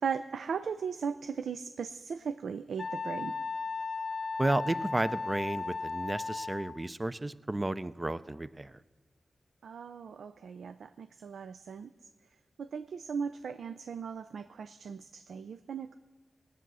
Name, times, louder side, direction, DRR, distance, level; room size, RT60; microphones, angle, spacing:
voice 1, 0.0-3.4 9.6-11.9 12.6-16.0, right 6 dB, 85° right, 11 dB, 0.4 m, -37 dB
Wind instrument woodwind instrument, 2.8-6.9, left 4 dB, 55° left, 0.5 m, -36 dB
voice 2, 4.4-8.8, right 2 dB, 25° right, 15 dB, 0.4 m, -32 dB
18.5 x 8.1 x 6.2 m, 1.3 s
cardioid pair, 70°, 0 cm